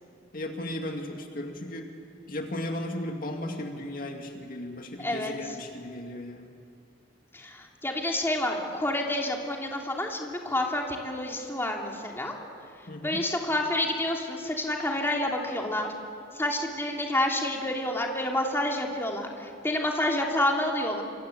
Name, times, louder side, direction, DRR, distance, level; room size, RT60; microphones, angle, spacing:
voice 1, 0.3-1.9 2.3-6.5 12.9-13.2, left 1 dB, 50° left, 3 dB, 2.2 m, -36 dB
voice 2, 5.0-5.3 7.3-12.3 13.0-15.9 16.3-21.0, left 1 dB, 15° left, 0 dB, 2.9 m, -29 dB
27.0 x 25.5 x 8.5 m, 2.4 s
head